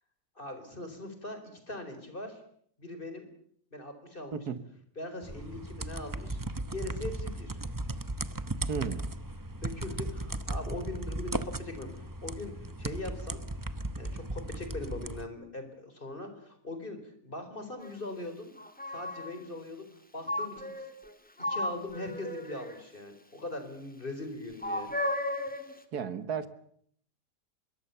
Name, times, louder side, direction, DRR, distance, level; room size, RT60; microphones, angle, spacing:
voice 1, 0.4-1.4 1.7-2.4 2.8-3.3 3.7-4.4 5.0-6.4 6.7-7.6 9.5-12.5 12.8-13.5 14.0-18.5 18.9-19.9 20.1-20.9 21.4-24.9, left 2 dB, 30° left, 4.5 m, -41 dB
voice 2, 4.3-4.6 8.7-9.1 25.9-26.5, right 6 dB, 60° right, 2.0 m, -34 dB
sound 1, 5.2-15.3, right 2 dB, 20° right, 0.5 m, -36 dB
sound 2, 17.8-17.9 18.6-19.3 20.3-21.1 21.4-22.8 24.6-25.7, left 1 dB, 5° left, 1.9 m, -34 dB
25.5 x 22.5 x 7.0 m
omnidirectional pair, 1.9 m